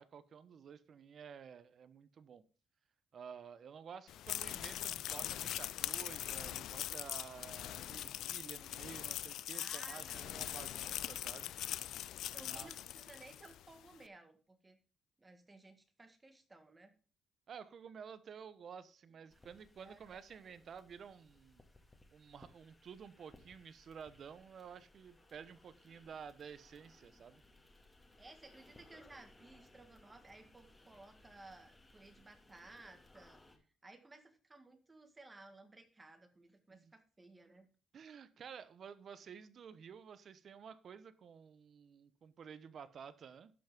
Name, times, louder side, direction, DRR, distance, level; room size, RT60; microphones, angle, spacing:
voice 1, 0.0-2.4 3.1-11.8 12.5-12.7 17.5-21.6 22.1-27.4 36.7-36.8 37.9-43.5, right 7 dB, 55° right, 14 dB, 0.9 m, -52 dB
sound 1, 4.1-13.6, left 12 dB, 80° left, 0.4 m, -42 dB
voice 2, 9.5-10.7 12.3-14.8 15.2-16.9 19.8-20.0 28.2-37.7, right 2 dB, 20° right, 8 dB, 2.0 m, -58 dB
sound 2, 19.3-33.6, left 2 dB, 15° left, 2.2 m, -64 dB
11.5 x 5.8 x 5.2 m, 0.37 s
cardioid pair, 90°, 0 cm